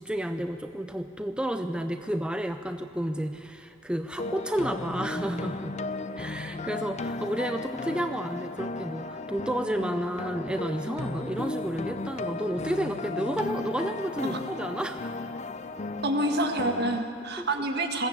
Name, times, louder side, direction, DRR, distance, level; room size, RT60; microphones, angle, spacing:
voice 1, 0.0-5.8 6.2-15.2 17.4-17.5, right 1 dB, 5° right, 7 dB, 0.5 m, -31 dB
sound 1, 4.2-17.0, left 3 dB, 35° left, 0.6 m, -35 dB
voice 2, 16.0-18.1, right 1 dB, 60° right, 4 dB, 1.8 m, -27 dB
21.0 x 15.0 x 8.6 m, 2.6 s
head